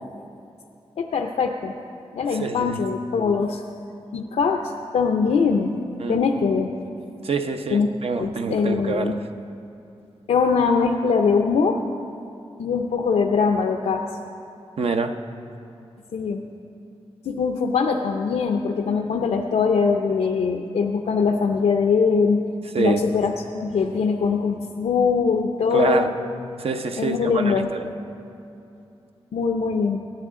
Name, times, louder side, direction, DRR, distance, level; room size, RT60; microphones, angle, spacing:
voice 1, 1.0-1.8 2.1-3.6 4.1-5.8 6.1-6.7 7.7-7.9 8.2-9.2 10.3-11.8 12.6-14.1 16.1-16.4 17.2-22.4 22.8-26.1 27.0-27.7 29.3-30.0, left 5 dB, 85° left, 3 dB, 0.6 m, -22 dB
voice 2, 2.3-2.8 6.0-6.2 7.2-9.3 14.8-15.2 22.7-23.0 25.7-26.1 26.6-27.9, right 4 dB, 65° right, 6 dB, 0.7 m, -26 dB
18.0 x 10.0 x 3.7 m, 2.7 s
cardioid pair, 65°, 11 cm